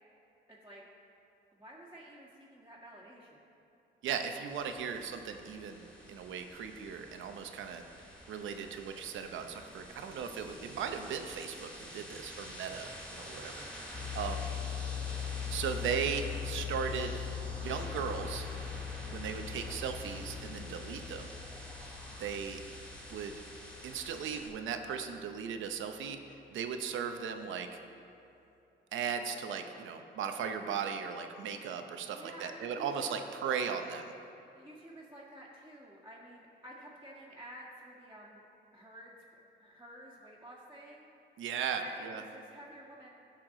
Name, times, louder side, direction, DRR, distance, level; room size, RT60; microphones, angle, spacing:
voice 1, 0.5-0.8 1.5-3.4 13.8-14.6 22.0-22.4 32.0-33.4 34.6-38.4 38.7-39.2 39.6-41.1 41.8-43.1, right 1 dB, 10° right, -8 dB, 1.8 m, -51 dB
voice 2, 4.0-7.8 8.3-14.5 15.5-17.2 17.6-18.5 19.1-21.3 22.2-22.6 23.1-23.4 23.8-27.7 28.9-34.1 41.4-42.2, right 7 dB, 75° right, 6 dB, 0.8 m, -37 dB
sound 1, 4.5-24.5, equal, 5° left, 2.4 m, -47 dB
sound 2, 13.9-24.8, left 8 dB, 25° left, 2.2 m, -41 dB
16.5 x 6.0 x 3.9 m, 2.8 s
cardioid pair, 90°, 20 cm